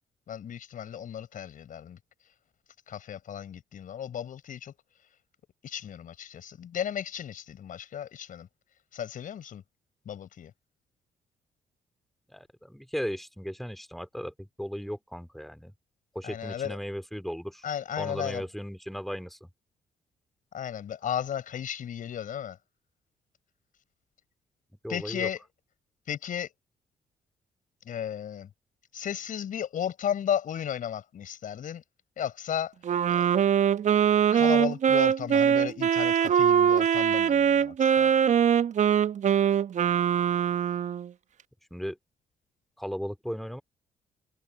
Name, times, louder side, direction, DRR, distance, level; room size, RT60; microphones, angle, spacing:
voice 1, 0.3-2.0 2.9-4.7 5.6-8.5 8.9-9.6 10.1-10.5 16.2-16.8 17.6-18.5 20.5-22.6 24.9-25.4 26.1-26.5 27.9-28.5 28.9-31.8 32.2-32.7 33.1-33.3 34.3-38.1, left 9 dB, 55° left, 5.8 m, -34 dB
voice 2, 12.3-15.7 16.1-17.7 18.0-19.5 24.8-25.3 41.7-42.0 42.8-43.6, equal, ahead, 3.6 m, -36 dB
Wind instrument woodwind instrument, 32.8-41.1, right 8 dB, 50° right, 1.0 m, -23 dB
hypercardioid pair, 45°, 16 cm